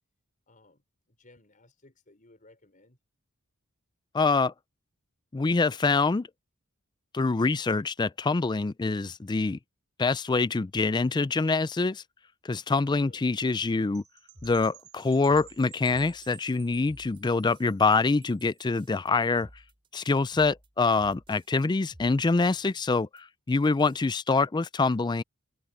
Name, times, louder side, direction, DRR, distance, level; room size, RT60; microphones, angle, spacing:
voice 1, 0.5-3.0 13.0-13.2 16.9-17.1 22.4-22.8, left 2 dB, 35° left, 5.8 m, -59 dB
voice 2, 4.1-4.5 5.3-6.3 7.1-9.6 10.0-12.0 12.4-14.0 14.4-19.5 19.9-25.2, left 3 dB, 20° left, 0.3 m, -25 dB
Percussion / Wind chime, 13.9-18.6, right 16 dB, 90° right, 5.4 m, -54 dB
sound 1, 14.3-16.6 16.8-17.7 17.9-21.6 21.9-22.9 23.2-23.3 23.5-24.1, equal, 25° right, 4.9 m, -54 dB
head